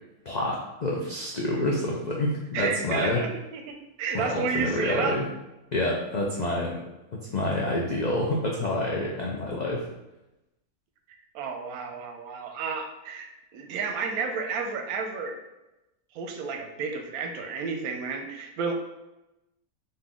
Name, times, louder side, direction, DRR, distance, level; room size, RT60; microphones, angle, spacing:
voice 1, 0.3-3.2 4.1-5.2 5.7-6.8 7.1-9.8, left 1 dB, 80° left, -3 dB, 0.3 m, -28 dB
voice 2, 2.5-5.2 11.3-15.4 16.1-18.7, right 5 dB, 90° right, 4 dB, 1.1 m, -31 dB
4.0 x 2.6 x 3.6 m, 0.97 s
omnidirectional pair, 1.5 m